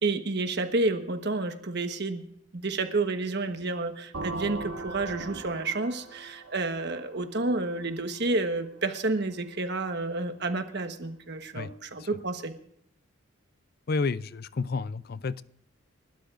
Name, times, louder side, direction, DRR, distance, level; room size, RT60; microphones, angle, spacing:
voice 1, 0.0-2.2 2.5-12.5, right 2 dB, 55° right, 7 dB, 1.2 m, -30 dB
sound 1, 4.1-7.9, right 2 dB, 85° right, 1.3 m, -39 dB
voice 2, 13.9-15.4, left 4 dB, 50° left, 17 dB, 0.4 m, -30 dB
30.0 x 13.0 x 2.5 m, 0.72 s
head